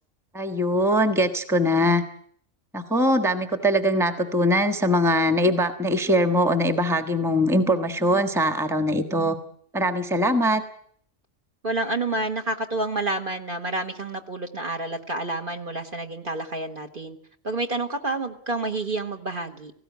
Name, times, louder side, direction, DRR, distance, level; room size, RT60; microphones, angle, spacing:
voice 1, 0.3-2.0 2.7-9.4 9.7-10.6, equal, ahead, 8 dB, 1.3 m, -22 dB
voice 2, 11.6-17.2 17.4-19.7, right 2 dB, 40° right, 4 dB, 1.6 m, -29 dB
18.5 x 16.5 x 9.4 m, 0.63 s
omnidirectional pair, 1.4 m